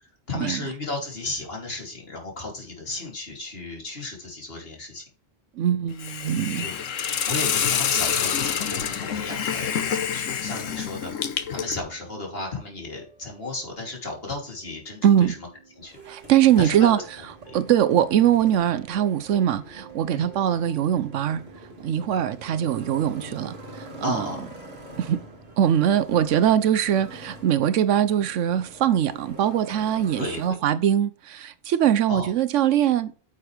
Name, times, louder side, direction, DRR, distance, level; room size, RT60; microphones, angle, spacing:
voice 1, 0.3-5.0 6.6-6.8 7.3-15.5 15.8-15.9 16.6-17.0 17.5-17.6 20.1-20.3 24.0-24.5 30.1-30.6 32.1-32.3, left 2 dB, 50° left, 3.2 m, -34 dB
voice 2, 5.6-6.7 15.0-15.3 16.1-17.0 17.5-21.4 21.8-24.3 25.0-25.2 25.6-33.1, right 10 dB, 75° right, 1.0 m, -22 dB
Hiss, 6.0-11.8, left 8 dB, 90° left, 1.2 m, -27 dB
sound 1, 8.1-23.2, right 5 dB, 35° right, 2.0 m, -51 dB
Motorcycle, 15.8-30.5, right 1 dB, 55° right, 2.3 m, -44 dB
9.4 x 7.2 x 3.3 m
omnidirectional pair, 1.3 m